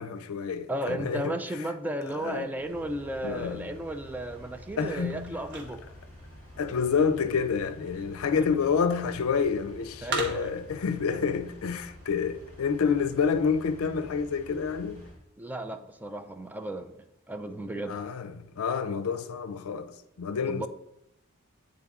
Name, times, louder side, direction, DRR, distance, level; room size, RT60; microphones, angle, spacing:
voice 1, 0.0-1.4 2.1-2.5 3.2-3.7 4.8-5.3 6.6-15.0 17.9-20.7, left 6 dB, 70° left, 0.4 m, -28 dB
voice 2, 0.7-5.8 8.4-8.5 10.0-10.6 15.4-18.0 20.5-20.7, right 1 dB, 10° right, 0.3 m, -34 dB
Engine, 2.5-15.2, left 1 dB, 10° left, 2.5 m, -49 dB
sound 1, 3.9-10.8, right 2 dB, 55° right, 1.1 m, -42 dB
8.3 x 3.8 x 3.6 m
head